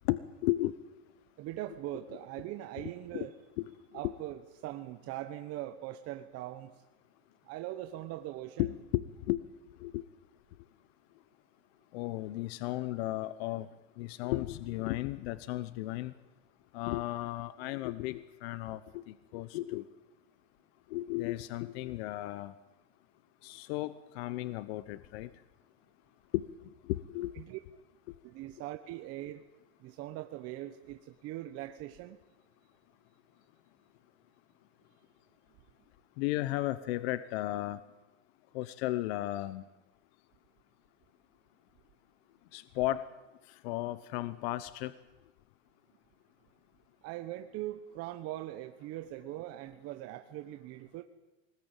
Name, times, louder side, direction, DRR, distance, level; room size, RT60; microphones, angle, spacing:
voice 1, 0.1-0.8 2.8-3.3 3.6-3.7 8.6-9.4 9.8-10.0 11.9-13.7 14.0-16.1 16.7-19.9 20.9-22.5 23.4-25.3 26.3-26.5 26.8-27.3 36.2-37.8 38.5-39.6 42.5-43.0 43.5-44.9, left 16 dB, 65° left, 14 dB, 1.0 m, -34 dB
voice 2, 1.4-3.4 3.9-6.8 7.4-8.8 27.3-27.6 28.2-29.5 29.8-32.2 47.0-51.0, right 14 dB, 45° right, 7 dB, 1.3 m, -41 dB
23.5 x 20.0 x 9.0 m, 1.1 s
supercardioid pair, 135°, 34 cm